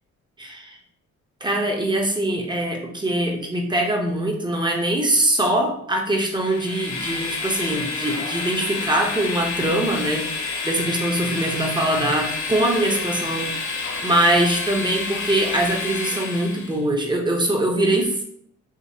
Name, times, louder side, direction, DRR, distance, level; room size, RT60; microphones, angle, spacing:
voice 1, 0.4-0.8 1.4-18.2, right 1 dB, 15° right, 1 dB, 0.8 m, -23 dB
Train, 6.3-16.8, left 4 dB, 65° left, 0.7 m, -29 dB
5.0 x 2.2 x 2.8 m, 0.68 s
cardioid pair, 90°, 30 cm